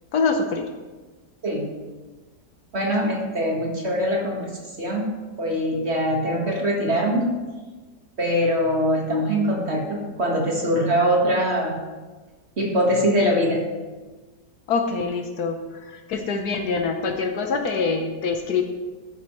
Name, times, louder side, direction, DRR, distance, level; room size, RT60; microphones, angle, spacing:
voice 1, 0.1-0.7 14.7-18.6, left 4 dB, 65° left, 5 dB, 1.4 m, -25 dB
voice 2, 2.7-4.5 4.8-7.3 8.2-11.8 12.6-13.6, equal, 40° right, 0 dB, 1.8 m, -22 dB
13.0 x 9.5 x 3.1 m, 1.3 s
omnidirectional pair, 1.8 m